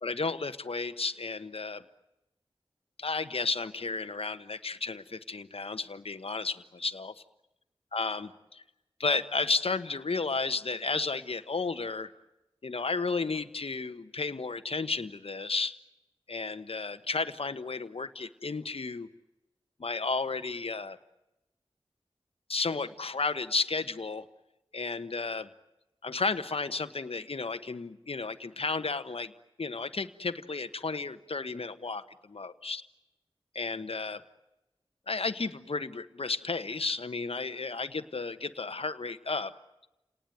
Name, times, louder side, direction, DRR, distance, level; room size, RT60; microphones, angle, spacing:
voice 1, 0.0-1.8 3.0-7.2 7.9-8.6 9.0-12.1 12.6-15.7 16.3-19.1 19.8-21.0 22.5-24.2 24.7-25.5 26.0-29.3 29.6-32.8 33.5-34.2 35.1-39.5, left 4 dB, 70° left, 9 dB, 1.2 m, -33 dB
29.5 x 19.5 x 9.3 m, 0.97 s
wide cardioid pair, 50°, 10 cm